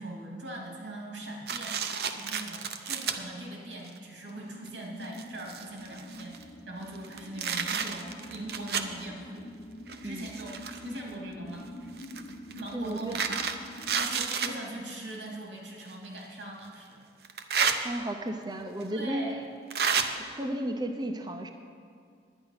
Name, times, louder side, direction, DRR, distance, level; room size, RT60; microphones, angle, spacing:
voice 1, 0.0-9.5 10.0-11.7 12.5-17.0 17.3-17.5 18.9-19.4, right 1 dB, 90° right, -1 dB, 2.5 m, -41 dB
sound 1, 1.5-3.2 3.9-4.0 4.7-4.8 5.0-6.4 7.0-9.0 9.9-11.0 12.0-14.5 15.8-15.9 17.2-17.8 18.8-18.9 19.7-20.1, right 6 dB, 60° right, 0.7 m, -31 dB
sound 2, 4.3-14.1, left 1 dB, 60° left, 0.8 m, -46 dB
voice 2, 10.0-10.4 12.7-13.2 17.8-19.4 20.2-21.5, right 1 dB, 25° right, 5 dB, 0.6 m, -34 dB
11.0 x 9.9 x 5.7 m, 2.2 s
head